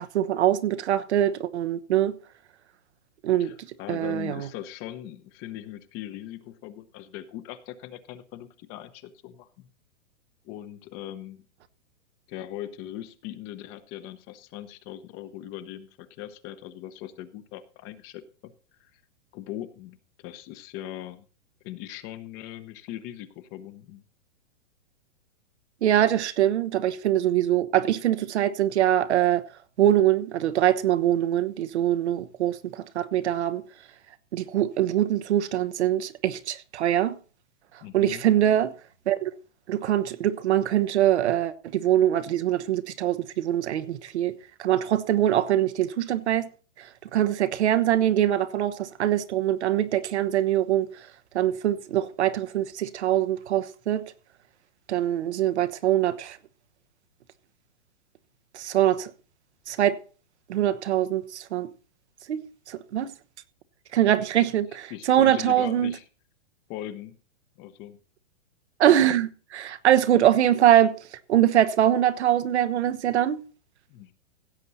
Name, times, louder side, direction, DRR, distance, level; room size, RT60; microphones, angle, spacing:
voice 1, 0.0-2.1 3.2-3.6 3.9-4.5 25.8-29.4 29.8-33.6 34.3-37.2 37.9-38.7 39.1-39.3 39.7-44.3 44.6-46.5 46.8-50.9 51.3-54.0 54.9-56.4 58.5-59.1 59.7-60.0 60.5-61.7 62.3-63.1 63.9-65.9 68.8-70.9 71.3-73.4, right 11 dB, 70° right, 1.2 m, -23 dB
voice 2, 3.4-9.7 10.4-11.4 12.3-18.5 18.8-18.9 19.3-21.3 21.6-24.0 37.8-38.2 64.9-66.0 66.7-67.2 67.6-68.0 73.9-74.1, left 12 dB, 30° left, 1.0 m, -40 dB
16.5 x 7.6 x 4.1 m
hypercardioid pair, 150°, 35 cm